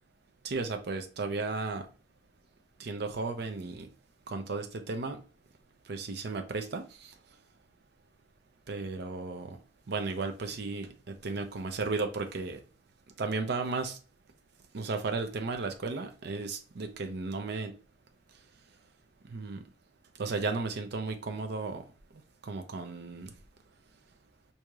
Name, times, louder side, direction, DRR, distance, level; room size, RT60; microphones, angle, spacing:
voice 1, 0.4-1.9 2.8-3.9 4.3-5.2 5.9-7.1 8.7-9.6 9.9-12.6 13.2-14.0 14.7-17.8 19.3-19.6 20.2-21.9 22.4-23.3, right 3 dB, 60° right, 0.5 m, -34 dB
4.6 x 2.8 x 2.3 m
head